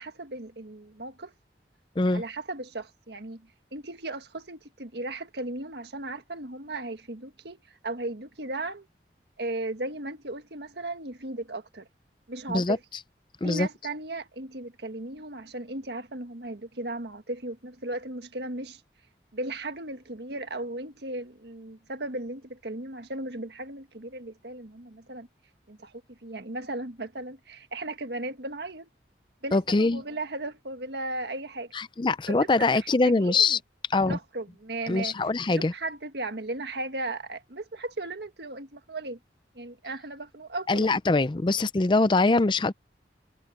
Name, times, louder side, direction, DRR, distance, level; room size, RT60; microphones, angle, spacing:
voice 1, 0.0-1.3 2.0-8.9 9.4-11.9 12.3-12.8 13.4-18.8 19.3-25.3 25.7-28.9 29.4-31.7 32.3-33.6 34.0-35.2 35.5-39.2 39.5-40.9, right 2 dB, 70° right, 1.6 m, -36 dB
voice 2, 29.5-30.0 31.7-33.6 33.9-34.2 34.9-35.7 40.7-42.7, left 3 dB, 25° left, 0.5 m, -23 dB
head